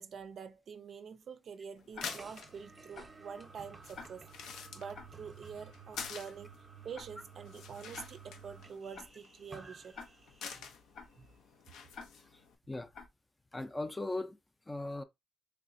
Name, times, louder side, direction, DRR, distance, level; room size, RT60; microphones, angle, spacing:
voice 1, 0.0-4.3 4.7-6.5 6.8-10.0 10.5-10.6 11.2-11.3, right 6 dB, 60° right, 0.4 m, -46 dB
sound 1, 1.8-12.5, left 6 dB, 80° left, 0.6 m, -49 dB
Tick-tock, 1.9-2.1 2.9-3.1 3.9-4.1 4.9-5.1 5.9-6.1 6.9-7.1 7.9-8.1 8.9-9.1 9.9-10.1 10.9-11.1 11.9-12.1 12.9-13.1, left 5 dB, 65° left, 1.3 m, -47 dB
sound 2, 2.0-10.8, right 5 dB, 30° right, 0.8 m, -54 dB
voice 2, 12.2-12.9 13.5-14.4 14.7-15.0, left 2 dB, 15° left, 0.5 m, -39 dB
3.4 x 2.9 x 2.6 m
cardioid pair, 90°, 0 cm